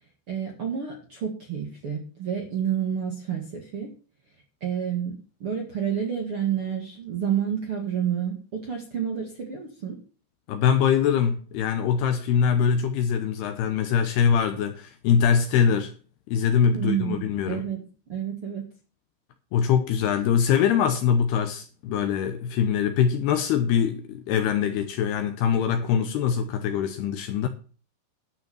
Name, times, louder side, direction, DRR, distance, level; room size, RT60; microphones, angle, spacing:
voice 1, 0.3-3.9 4.6-5.1 5.4-8.4 8.6-10.0 16.7-17.2 17.5-17.8 18.1-18.6, right 8 dB, 50° right, 1.8 m, -29 dB
voice 2, 10.5-15.9 16.3-17.6 19.5-27.5, left 7 dB, 75° left, 2.5 m, -23 dB
12.0 x 5.7 x 7.3 m
omnidirectional pair, 5.4 m